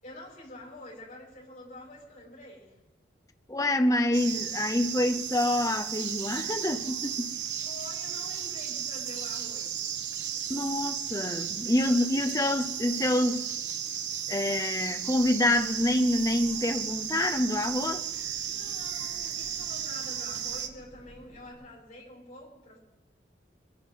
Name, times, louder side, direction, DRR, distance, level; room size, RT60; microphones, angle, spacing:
voice 1, 0.0-2.8 7.6-9.8 18.4-22.8, left 1 dB, 45° left, 6.8 m, -47 dB
voice 2, 3.5-7.4 10.5-13.5 14.3-18.0, left 1 dB, 20° left, 0.7 m, -27 dB
sound 1, 4.1-20.7, right 9 dB, 85° right, 1.2 m, -34 dB
Engine, 15.1-21.5, equal, 40° right, 6.4 m, -55 dB
23.5 x 11.0 x 5.6 m
head